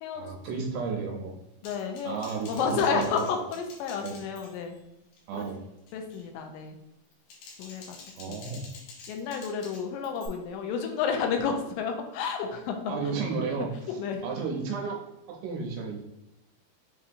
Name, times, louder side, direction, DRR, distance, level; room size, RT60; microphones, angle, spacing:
voice 1, 0.2-1.3 2.1-3.2 4.0-4.1 5.3-5.6 8.2-8.7 12.9-13.7 14.2-15.0 15.3-16.0, right 5 dB, 80° right, 1 dB, 2.8 m, -32 dB
voice 2, 1.6-2.2 2.5-4.8 5.3-5.5 5.9-6.8 7.6-8.0 8.3-8.4 9.1-12.9 14.0-14.2, left 6 dB, 90° left, 4 dB, 2.8 m, -31 dB
Typing, 1.6-4.8 5.1-5.5 5.9-6.2 7.0-10.3, left 3 dB, 70° left, 2.1 m, -49 dB
7.0 x 2.7 x 2.6 m, 0.92 s
omnidirectional pair, 5.0 m